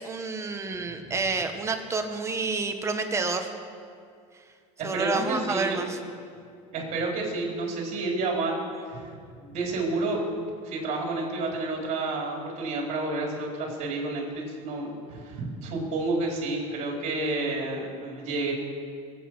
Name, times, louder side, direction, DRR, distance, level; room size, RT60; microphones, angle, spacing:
voice 1, 0.0-3.6 4.8-6.0, right 3 dB, 15° right, 5 dB, 1.5 m, -29 dB
voice 2, 4.8-5.8 6.7-8.5 8.9-10.2 10.6-18.5, right 2 dB, 45° right, -1 dB, 4.2 m, -30 dB
22.5 x 8.6 x 6.2 m, 2.2 s
supercardioid pair, 130°, 17 cm